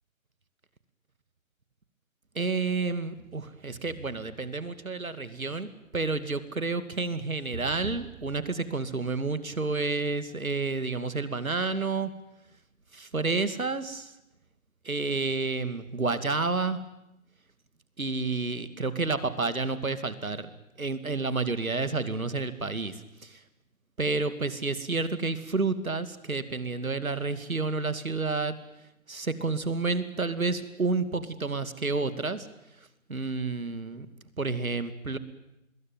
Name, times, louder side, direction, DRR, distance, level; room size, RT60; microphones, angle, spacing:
voice 1, 2.3-5.7 5.9-12.1 12.9-14.1 14.8-16.8 18.0-20.5 20.8-22.9 23.2-23.4 24.0-28.5 29.1-32.5 33.1-34.1 34.4-35.2, right 3 dB, 80° right, 11 dB, 2.7 m, -30 dB
27.0 x 21.5 x 9.4 m, 0.87 s
figure-of-eight pair, 165°, 41 cm